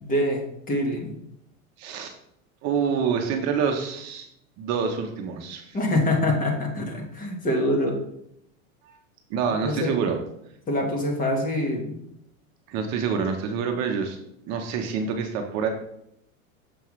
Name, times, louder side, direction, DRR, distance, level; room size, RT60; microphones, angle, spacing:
voice 1, 0.0-1.2 5.7-8.0 9.6-9.9 10.7-12.0, left 1 dB, 20° left, 1 dB, 1.4 m, -25 dB
voice 2, 1.8-2.1 2.6-4.3 4.6-5.8 9.3-10.2 12.7-14.2 14.4-15.7, right 6 dB, 40° right, 3 dB, 0.9 m, -26 dB
6.9 x 5.6 x 3.1 m, 0.76 s
supercardioid pair, 140°, 40 cm